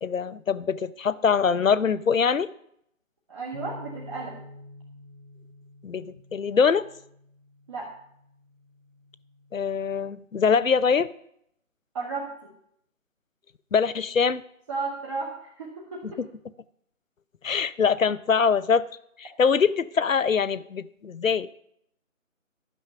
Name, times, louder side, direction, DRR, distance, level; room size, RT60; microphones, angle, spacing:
voice 1, 0.0-2.5 5.8-6.8 9.5-11.1 13.7-14.4 17.4-18.8 19.2-21.5, left 6 dB, 70° left, 17 dB, 0.7 m, -23 dB
voice 2, 3.3-4.3 7.7-7.9 11.9-12.3 14.7-16.2, right 4 dB, 25° right, -4 dB, 1.5 m, -33 dB
sound 1, 3.5-9.8, left 2 dB, ahead, 0.9 m, -48 dB
12.0 x 6.4 x 6.7 m, 0.72 s
figure-of-eight pair, 155°, 40 cm